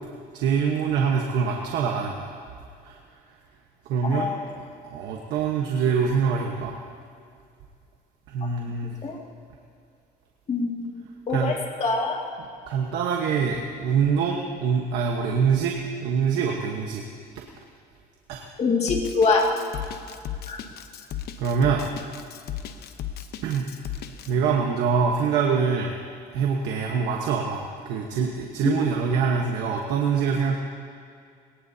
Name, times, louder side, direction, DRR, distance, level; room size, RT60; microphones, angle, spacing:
voice 1, 0.3-2.3 2.8-3.0 3.8-4.3 4.8-6.8 8.3-8.9 11.3-11.5 12.4-15.7 16.0-17.0 18.3-18.4 19.9-20.0 21.4-21.8 23.4-23.7 24.3-25.9 26.3-30.6, right 6 dB, 85° right, 0 dB, 1.3 m, -24 dB
voice 2, 4.0-4.5 8.6-8.7 9.0-9.2 10.5-11.0 11.3-12.2 18.6-19.5 20.5-20.6 28.6-28.8, left 4 dB, 40° left, -1 dB, 2.3 m, -24 dB
Drum kit, 18.9-24.3, left 11 dB, 70° left, 0.9 m, -35 dB
22.0 x 18.5 x 2.8 m, 2.3 s
cardioid pair, 110°, 17 cm